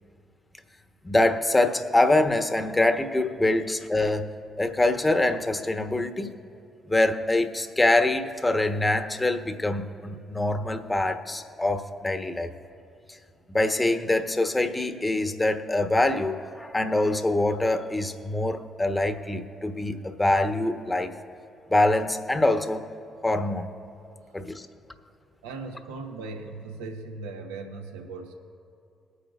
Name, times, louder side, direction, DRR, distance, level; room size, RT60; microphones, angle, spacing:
voice 1, 1.0-4.3 4.6-6.3 6.9-12.5 13.5-21.1 21.7-22.8 23.2-23.7 24.3-24.7, left 2 dB, 20° left, 7 dB, 1.2 m, -24 dB
voice 2, 25.4-28.3, right 3 dB, 85° right, 2 dB, 1.1 m, -38 dB
22.0 x 9.6 x 2.5 m, 2.6 s
hypercardioid pair, 45°, 0 cm